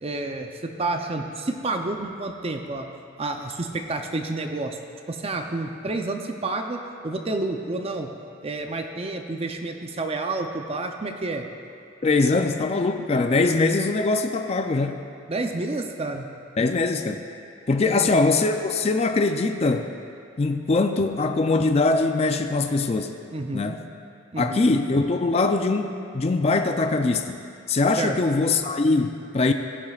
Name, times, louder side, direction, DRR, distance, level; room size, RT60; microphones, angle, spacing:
voice 1, 0.0-2.9 3.2-4.8 5.1-6.8 7.0-8.1 8.4-11.4 15.3-16.3 17.8-18.2 23.3-23.8 24.3-24.8 28.0-28.2, right 2 dB, 30° right, 4 dB, 0.5 m, -29 dB
voice 2, 12.0-15.0 16.6-17.2 17.7-19.9 20.4-23.2 23.5-23.8 24.4-27.4 27.7-29.5, left 3 dB, 30° left, 6 dB, 0.4 m, -22 dB
16.0 x 11.0 x 2.4 m, 2.5 s
head